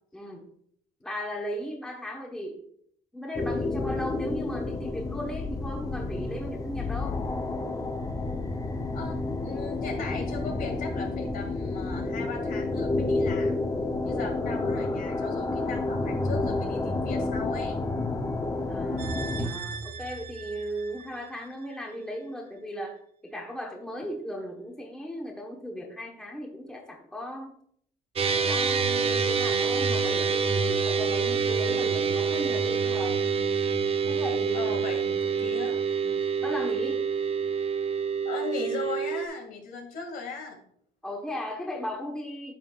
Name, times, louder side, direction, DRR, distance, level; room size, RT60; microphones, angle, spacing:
voice 1, 0.1-0.5 1.0-2.6 3.1-7.2 18.7-23.0 23.2-27.5 28.2-33.2 34.1-34.7 36.0-37.0 41.0-42.5, equal, 5° left, 0 dB, 1.2 m, -36 dB
sound 1, 3.3-19.5, left 2 dB, 20° left, 0.7 m, -30 dB
voice 2, 9.4-13.7 14.1-17.8 19.2-19.3 34.5-35.8 38.2-40.6, left 4 dB, 60° left, 2 dB, 2.2 m, -38 dB
sound 2, 19.0-22.2 22.5-22.6, right 5 dB, 70° right, 1.6 m, -39 dB
sound 3, 28.2-39.3, right 5 dB, 35° right, 0.7 m, -26 dB
10.0 x 5.7 x 2.4 m, 0.66 s
cardioid pair, 110°, 17 cm